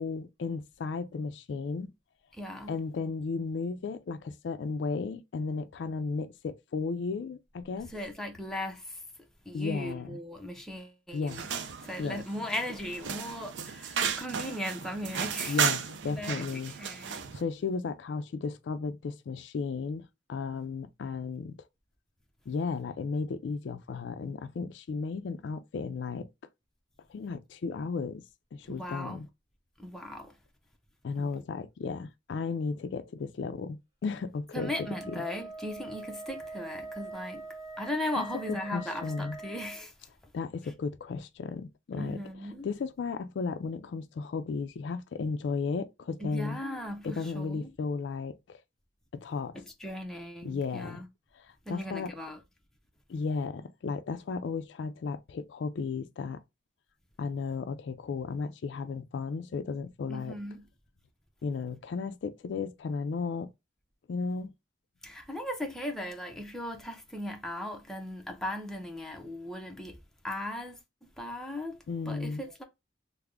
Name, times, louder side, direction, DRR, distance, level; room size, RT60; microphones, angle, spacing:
voice 1, 0.0-1.9 2.7-7.9 9.5-10.2 11.1-11.5 12.0-12.2 15.5-16.7 17.3-21.6 22.5-26.3 27.1-28.2 28.5-29.3 31.0-35.2 38.2-38.3 38.7-39.4 40.3-42.2 42.6-46.6 47.0-48.6 49.1-49.6 50.4-51.0 51.3-52.2 53.1-56.4 57.2-60.4 61.4-63.5 64.1-64.5 71.9-72.4, left 4 dB, 70° left, 0.3 m, -34 dB
voice 2, 2.3-2.8 7.9-9.0 9.5-11.5 11.8-15.7 16.0-17.3 28.6-29.2 29.8-30.3 31.2-31.3 34.5-37.4 37.8-39.9 42.0-42.7 46.2-47.7 49.6-51.1 51.7-52.4 60.1-60.7 65.0-70.0 70.2-70.8 71.2-71.8 72.1-72.6, left 1 dB, 5° left, 0.6 m, -38 dB
sound 1, 11.3-17.4, right 7 dB, 75° right, 0.4 m, -34 dB
Wind instrument woodwind instrument, 34.5-39.8, right 2 dB, 20° right, 1.0 m, -43 dB
3.4 x 2.0 x 3.4 m
head